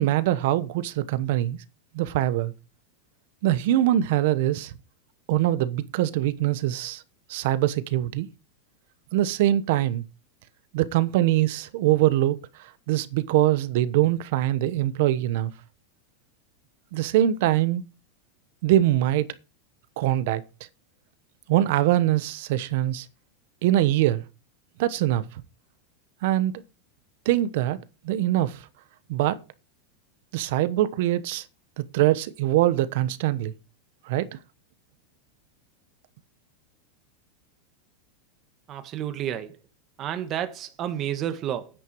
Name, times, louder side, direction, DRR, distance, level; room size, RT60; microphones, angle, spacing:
voice 1, 0.0-1.6 1.9-2.5 3.4-4.7 5.3-7.0 7.3-8.3 9.1-10.0 10.7-15.5 16.9-17.8 18.6-19.3 20.0-20.4 21.5-23.1 23.6-24.2 24.8-25.3 26.2-26.6 27.2-27.8 28.0-28.6 29.1-29.4 30.3-31.4 31.8-33.5 34.1-34.4, right 13 dB, 60° right, 1.0 m, -23 dB
voice 2, 38.7-39.6 40.0-41.7, right 10 dB, 30° right, 1.3 m, -30 dB
9.9 x 9.3 x 4.7 m
supercardioid pair, 150°, 0 cm